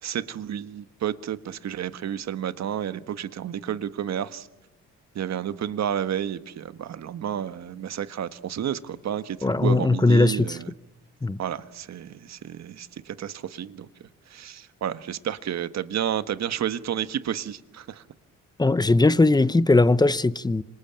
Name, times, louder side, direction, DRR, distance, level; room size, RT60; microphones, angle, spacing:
voice 1, 0.0-4.5 5.1-10.7 11.4-13.9 14.3-18.0, right 9 dB, 60° right, 1.5 m, -31 dB
voice 2, 9.4-10.6 11.2-11.4 18.6-20.6, left 2 dB, 15° left, 0.9 m, -19 dB
27.0 x 24.5 x 8.9 m
cardioid pair, 90°, 30 cm